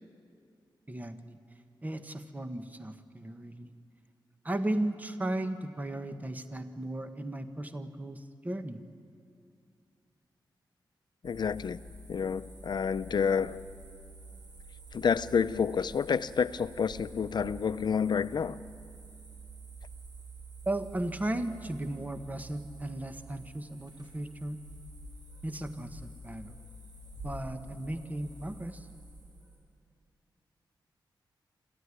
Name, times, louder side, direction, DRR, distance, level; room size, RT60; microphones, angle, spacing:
voice 1, 0.9-1.4 1.8-3.7 4.4-8.8 20.6-24.6 25.4-26.6 27.2-28.9, right 1 dB, 20° right, 9 dB, 1.2 m, -36 dB
voice 2, 11.2-11.8 12.1-13.6 14.9-18.6, left 6 dB, 60° left, 15 dB, 0.6 m, -29 dB
sound 1, 11.2-29.6, right 2 dB, 55° right, 5.3 m, -48 dB
26.5 x 15.0 x 9.8 m, 2.4 s
wide cardioid pair, 100°, 8 cm